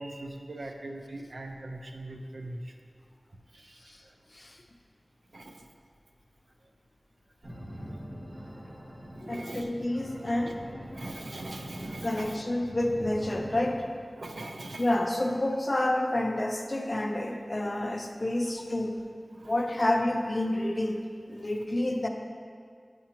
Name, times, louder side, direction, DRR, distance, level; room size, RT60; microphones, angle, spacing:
voice 1, 0.0-2.7 3.5-4.1 5.3-5.6 9.1-9.7 10.9-12.4 14.2-14.9 17.7-17.8 19.3-19.5, right 1 dB, 85° right, 3 dB, 0.5 m, -41 dB
sound 1, 7.4-13.8, equal, 70° right, 1.4 m, -43 dB
voice 2, 9.2-10.9 12.0-13.8 14.8-19.0 19.3-22.1, left 1 dB, 50° left, 4 dB, 0.5 m, -29 dB
7.7 x 5.8 x 2.9 m, 2.1 s
wide cardioid pair, 45°, 0 cm